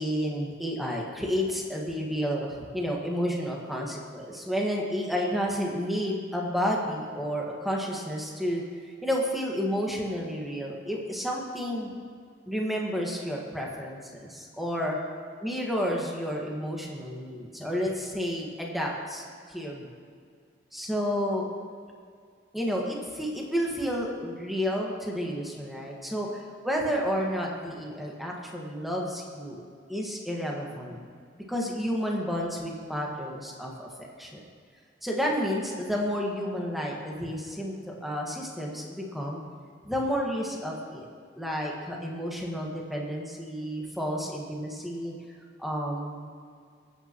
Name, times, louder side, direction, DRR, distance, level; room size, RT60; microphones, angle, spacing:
voice 1, 0.0-8.6 9.0-11.9 12.4-15.0 15.4-19.9 20.7-21.5 22.5-26.3 26.6-29.6 29.9-31.0 31.3-34.4 35.0-39.4 39.8-41.0 41.4-45.1 45.6-46.2, equal, ahead, -2 dB, 1.6 m, -31 dB
20.0 x 9.0 x 3.0 m, 2.1 s
head